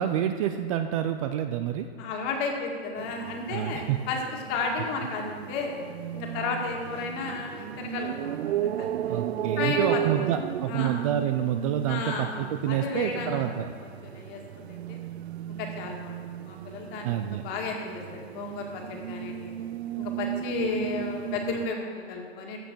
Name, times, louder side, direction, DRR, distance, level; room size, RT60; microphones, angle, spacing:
voice 1, 0.0-1.9 3.5-4.0 9.1-13.7 17.0-17.4, right 10 dB, 35° right, 8 dB, 0.4 m, -28 dB
voice 2, 2.0-5.7 6.1-8.9 9.6-10.3 10.7-11.0 11.9-13.5 13.8-15.0 15.5-19.5 20.0-22.6, left 4 dB, 35° left, 1 dB, 2.0 m, -33 dB
sound 1, 3.0-21.7, right 11 dB, 85° right, 0.6 m, -35 dB
15.0 x 5.7 x 6.2 m, 2.2 s
hypercardioid pair, 150°, 32 cm